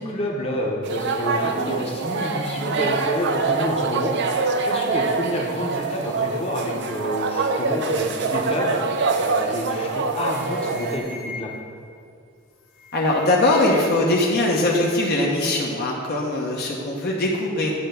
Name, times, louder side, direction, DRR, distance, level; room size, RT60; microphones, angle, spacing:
voice 1, 0.0-4.1 4.6-8.8 9.1-11.5, equal, 30° left, -2 dB, 1.0 m, -28 dB
sound 1, 0.8-11.0, right 4 dB, 60° right, 0.5 m, -25 dB
sound 2, 9.8-9.9 10.1-11.8 12.6-14.1 14.3-15.1, left 3 dB, 85° left, 1.0 m, -41 dB
voice 2, 12.9-17.7, left 2 dB, 55° left, -2 dB, 0.9 m, -21 dB
9.8 x 3.4 x 6.8 m, 2.3 s
head